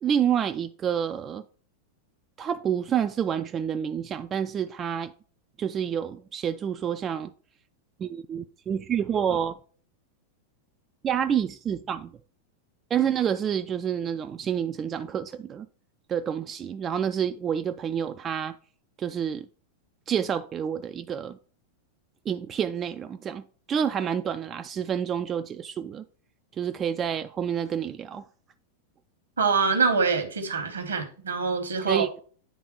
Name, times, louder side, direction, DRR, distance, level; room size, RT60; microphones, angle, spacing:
voice 1, 0.0-1.4 2.4-5.1 5.6-7.3 8.0-9.6 11.0-12.1 12.9-15.7 16.1-18.6 19.0-19.5 20.1-21.4 22.3-26.0 26.6-28.2 31.8-32.2, right 8 dB, 25° right, 0.3 m, -28 dB
voice 2, 29.4-32.1, right 5 dB, 70° right, 1.1 m, -25 dB
9.3 x 3.5 x 3.0 m
figure-of-eight pair, 90°, 0 cm